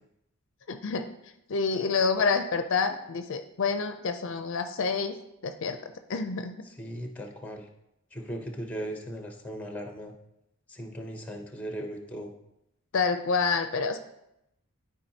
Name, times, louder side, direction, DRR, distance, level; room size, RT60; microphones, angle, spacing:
voice 1, 0.7-1.1 1.5-5.1 5.4-6.6 12.9-14.0, left 4 dB, 60° left, 8 dB, 0.5 m, -28 dB
voice 2, 6.6-7.7 8.1-10.2 10.7-12.3, equal, 5° left, 3 dB, 0.8 m, -38 dB
12.0 x 4.7 x 2.8 m, 0.84 s
head